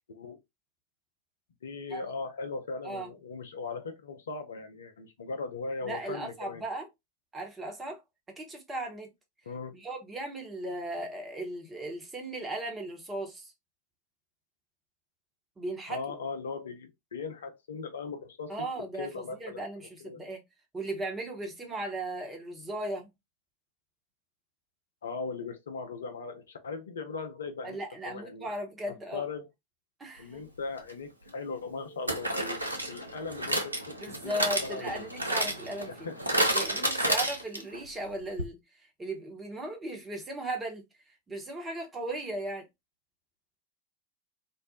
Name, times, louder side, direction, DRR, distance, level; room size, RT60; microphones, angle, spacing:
voice 1, 1.6-6.6 9.5-9.7 15.9-18.7 19.0-19.6 20.0-20.2 25.0-27.8 28.0-28.5 28.9-29.5 30.2-32.6 32.9-35.1 35.8-36.4, left 4 dB, 65° left, 0.5 m, -39 dB
voice 2, 5.8-6.9 7.3-8.0 8.4-9.1 9.7-13.5 15.6-16.0 18.5-20.4 20.7-23.1 27.6-29.2 30.0-30.5 34.0-35.9 36.5-38.6 39.0-40.8 41.3-42.7, right 1 dB, 15° right, 0.9 m, -37 dB
sound 1, 30.8-30.9 32.1-37.8 38.1-38.2 38.4-38.5, right 1 dB, 85° right, 0.5 m, -30 dB
2.6 x 2.0 x 2.8 m
figure-of-eight pair, 90°, 0 cm